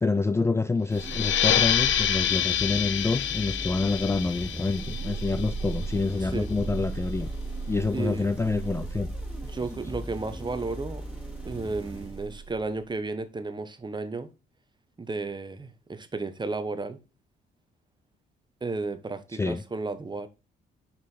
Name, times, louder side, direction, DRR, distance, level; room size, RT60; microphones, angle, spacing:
voice 1, 0.0-7.3 7.7-9.1 19.3-19.6, left 3 dB, 15° left, 0.4 m, -27 dB
sound 1, 0.9-6.2, left 10 dB, 70° left, 0.9 m, -27 dB
sound 2, 0.9-12.8, right 2 dB, 5° right, 2.8 m, -36 dB
voice 2, 7.9-8.3 9.4-11.0 11.4-14.3 15.0-17.0 18.6-20.3, right 3 dB, 20° right, 1.0 m, -33 dB
5.6 x 5.2 x 4.1 m
cardioid pair, 90°, 20 cm